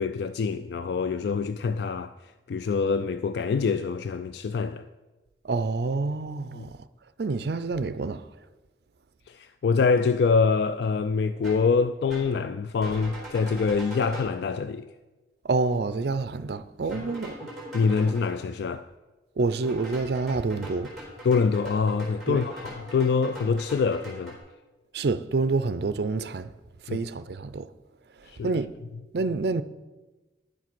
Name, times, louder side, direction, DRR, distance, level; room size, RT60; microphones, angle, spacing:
voice 1, 0.0-2.1 2.5-4.9 6.5-6.7 9.3-14.9 16.9-17.1 17.7-18.8 21.2-24.4 26.9-27.0 28.3-28.6, left 5 dB, 65° left, 0.3 m, -25 dB
voice 2, 5.4-6.8 7.2-8.3 15.4-17.4 19.4-20.9 22.3-22.4 24.9-26.5 26.8-27.7 28.4-28.8 29.1-29.6, right 3 dB, 60° right, 0.5 m, -27 dB
sound 1, 11.4-11.7 12.1-12.4 12.8-14.4 16.9-18.3 19.6-24.4, equal, ahead, 3.9 m, -41 dB
10.5 x 7.3 x 6.0 m
head